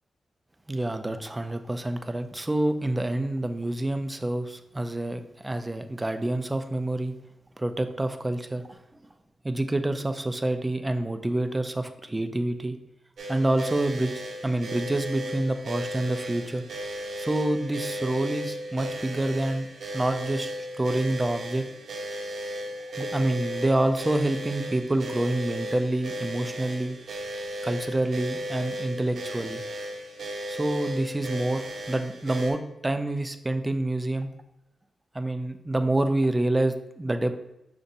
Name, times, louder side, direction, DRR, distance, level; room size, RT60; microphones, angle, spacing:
voice 1, 0.7-7.1 7.6-8.8 9.4-12.8 13.3-14.1 14.4-16.6 17.2-19.7 19.9-20.5 20.8-21.6 23.0-27.0 27.6-29.6 30.5-34.3 35.1-37.3, right 1 dB, 15° right, 8 dB, 0.3 m, -27 dB
sound 1, 13.2-32.5, equal, 60° right, 0.8 m, -35 dB
5.3 x 2.5 x 4.0 m, 0.88 s
wide cardioid pair, 145°, 0 cm